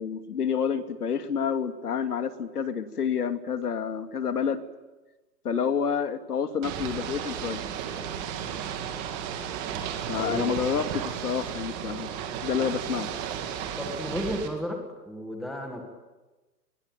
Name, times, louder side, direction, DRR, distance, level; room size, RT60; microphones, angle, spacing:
voice 1, 0.0-4.6 5.4-7.6 10.1-12.1 12.4-13.1, left 7 dB, 65° left, 9 dB, 2.7 m, -29 dB
Ocean / Boat Water vehicle, 6.6-14.5, right 8 dB, 15° right, 2.1 m, -34 dB
voice 2, 10.2-10.6 13.8-14.8 15.1-15.8, equal, ahead, 2 dB, 1.7 m, -33 dB
28.0 x 22.0 x 9.1 m, 1.1 s
hypercardioid pair, 170°, 49 cm